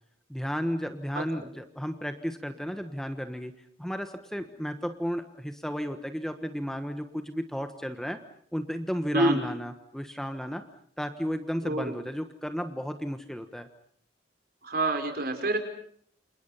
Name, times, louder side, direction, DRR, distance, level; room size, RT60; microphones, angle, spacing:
voice 1, 0.3-3.5 3.8-8.2 8.5-10.6 11.0-13.7, equal, 5° left, 7 dB, 1.3 m, -33 dB
voice 2, 14.6-15.6, right 2 dB, 55° right, 6 dB, 5.1 m, -26 dB
29.0 x 27.5 x 5.7 m, 0.62 s
head